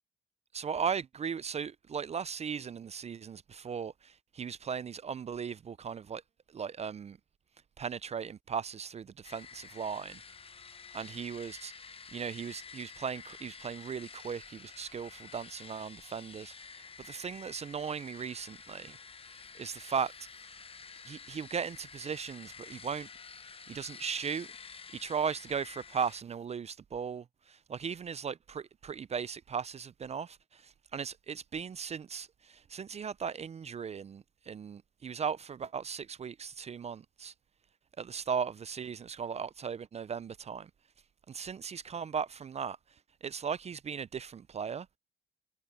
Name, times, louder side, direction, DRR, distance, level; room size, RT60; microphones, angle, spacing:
voice 1, 0.5-6.2 6.5-7.2 7.8-10.2 10.9-11.7 12.1-19.0 19.6-20.1 21.1-23.1 23.7-24.5 24.9-37.3 38.0-40.7 41.3-42.8 43.2-44.9, right 6 dB, 35° right, 0.4 m, -37 dB
sound 1, 9.2-26.2, left 5 dB, 30° left, 0.9 m, -50 dB
cardioid pair, 90°, 20 cm